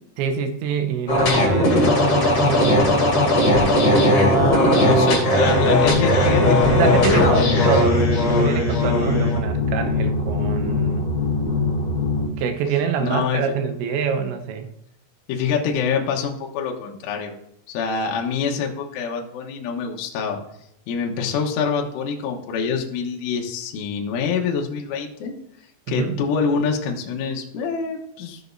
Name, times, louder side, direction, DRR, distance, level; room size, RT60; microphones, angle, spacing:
voice 1, 0.2-2.7 4.7-5.0 5.3-5.5 6.8-11.1 12.4-14.7 25.9-26.2, right 6 dB, 75° right, 6 dB, 2.9 m, -25 dB
sound 1, 1.1-9.4, left 1 dB, 35° left, 2.9 m, -18 dB
voice 2, 4.8-7.6 13.0-13.5 15.3-17.3 17.7-20.4 20.9-25.3 25.9-28.4, left 6 dB, 80° left, 0 dB, 3.6 m, -26 dB
sound 2, 5.8-12.3, left 3 dB, 55° left, 3.4 m, -23 dB
15.5 x 7.0 x 2.6 m, 0.79 s
omnidirectional pair, 5.6 m